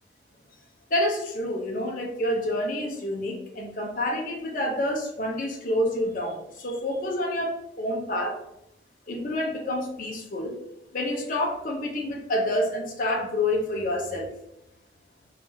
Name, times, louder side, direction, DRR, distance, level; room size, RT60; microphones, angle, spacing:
voice 1, 0.9-8.4 9.1-10.5 10.9-14.3, left 1 dB, 45° left, 0 dB, 0.6 m, -28 dB
4.6 x 2.4 x 2.6 m, 0.82 s
head